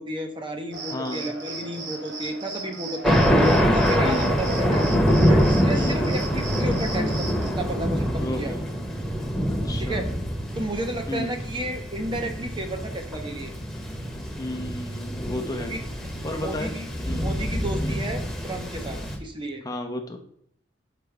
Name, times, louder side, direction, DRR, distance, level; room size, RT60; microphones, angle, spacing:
voice 1, 0.0-3.2 3.6-4.9 5.3-8.6 9.8-10.0 10.5-13.5 15.6-15.8 16.4-16.8 17.2-19.6, right 1 dB, 25° right, 4 dB, 0.8 m, -32 dB
Cricket, 0.7-7.5, right 3 dB, 70° right, 1.3 m, -37 dB
voice 2, 0.9-1.2 4.0-4.2 5.7-6.0 8.2-8.6 9.5-10.0 11.1-11.3 14.4-15.7 16.2-16.7 17.0-17.3 17.8-18.0 19.6-20.2, left 1 dB, 20° left, 4 dB, 0.7 m, -33 dB
Thunder, 3.0-19.2, equal, ahead, 1.1 m, -25 dB
6.7 x 5.0 x 3.4 m, 0.69 s
head